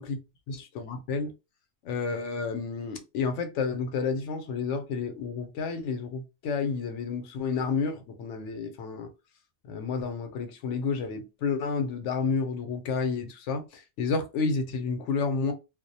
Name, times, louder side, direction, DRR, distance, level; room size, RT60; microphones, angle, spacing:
voice 1, 0.5-1.3 1.8-9.1 9.6-15.5, left 5 dB, 75° left, 0.9 m, -30 dB
2.3 x 2.0 x 2.6 m
omnidirectional pair, 1.2 m